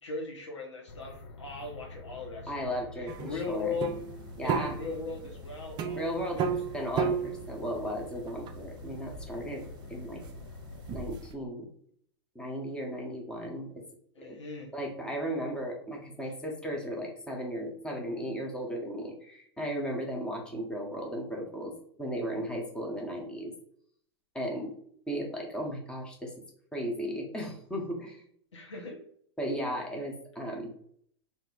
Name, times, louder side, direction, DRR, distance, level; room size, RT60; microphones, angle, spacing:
voice 1, 0.0-3.9 4.4-6.6 14.1-14.7 16.2-16.3 28.5-29.0 30.4-30.6, left 4 dB, 85° left, 0 dB, 1.0 m, -39 dB
sound 1, 0.9-10.9, left 2 dB, 65° left, 0.6 m, -47 dB
voice 2, 2.5-3.7 4.4-4.8 5.9-6.4 6.7-10.2 10.9-11.7 12.3-13.7 14.2-14.4 14.7-21.7 22.0-23.5 24.3-24.7 25.1-26.3 26.7-28.2 29.4-30.7, equal, 5° left, 0 dB, 0.8 m, -35 dB
sound 2, 3.1-11.3, right 6 dB, 30° right, 0.4 m, -35 dB
2.7 x 2.0 x 3.9 m, 0.64 s
hypercardioid pair, 105°, 15 cm